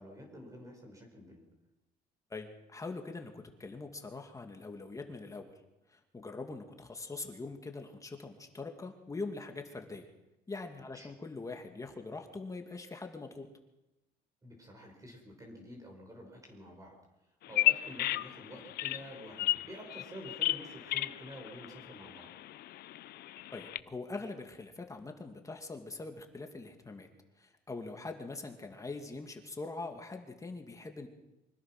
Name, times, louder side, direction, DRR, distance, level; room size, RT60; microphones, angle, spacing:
voice 1, 0.0-1.4 10.9-11.1 14.4-17.0 17.5-22.3, equal, 20° right, 1 dB, 5.6 m, -49 dB
voice 2, 2.3-5.6 5.9-10.1 10.5-13.5 23.5-27.1 27.4-31.1, left 3 dB, 20° left, 4 dB, 2.4 m, -43 dB
Bird vocalization bird call bird song, 17.4-23.8, left 15 dB, 70° left, 0.7 m, -34 dB
25.0 x 18.5 x 6.1 m, 0.97 s
cardioid pair, 110°, 17 cm